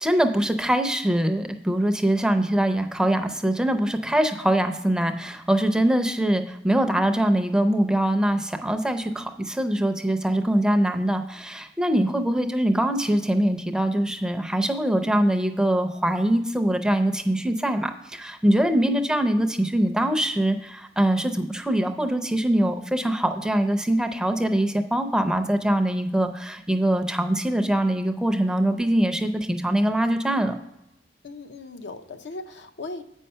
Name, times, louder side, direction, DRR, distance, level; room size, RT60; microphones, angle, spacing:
voice 1, 0.0-30.5, right 1 dB, 5° right, 6 dB, 0.5 m, -23 dB
voice 2, 12.1-12.4 18.7-19.0 31.2-33.0, left 2 dB, 75° left, 7 dB, 0.7 m, -39 dB
8.1 x 5.5 x 5.4 m, 0.86 s
head